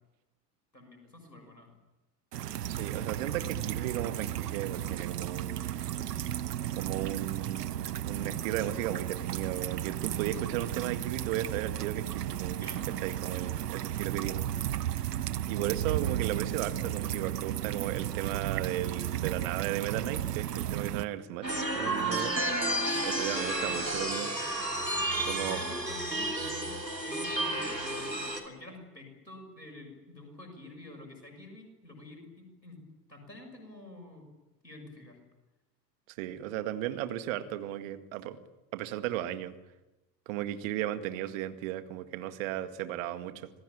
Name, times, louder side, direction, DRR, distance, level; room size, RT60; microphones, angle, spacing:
voice 1, 0.7-1.7 12.6-13.0 22.0-22.3 24.9-32.8 33.1-34.2 34.6-35.2, left 2 dB, 90° left, 4 dB, 6.8 m, -48 dB
sound 1, 2.3-21.0, right 11 dB, 70° right, 1.0 m, -34 dB
voice 2, 2.7-5.8 6.7-12.7 13.0-14.5 15.4-21.5 21.8-22.3 22.9-24.3 25.3-25.6 36.1-38.4 38.7-39.5 40.3-43.5, right 13 dB, 50° right, 10 dB, 2.0 m, -35 dB
sound 2, 21.4-28.4, right 1 dB, 90° right, 2.9 m, -31 dB
26.5 x 19.5 x 8.8 m, 1.0 s
figure-of-eight pair, 80°, 50 cm